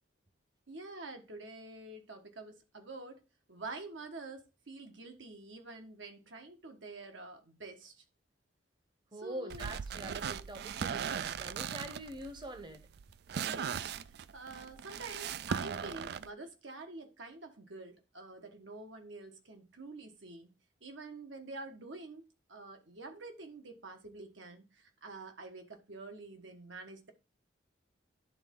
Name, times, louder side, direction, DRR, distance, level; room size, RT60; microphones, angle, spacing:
voice 1, 0.7-3.2 3.5-8.0 9.1-9.7 13.4-13.9 14.3-20.5 20.8-22.2 22.5-27.1, right 3 dB, 75° right, 1.3 m, -47 dB
voice 2, 9.1-12.9, right 1 dB, 25° right, 0.9 m, -44 dB
sound 1, 9.5-16.3, right 7 dB, 55° right, 0.3 m, -38 dB
11.0 x 3.7 x 3.7 m
head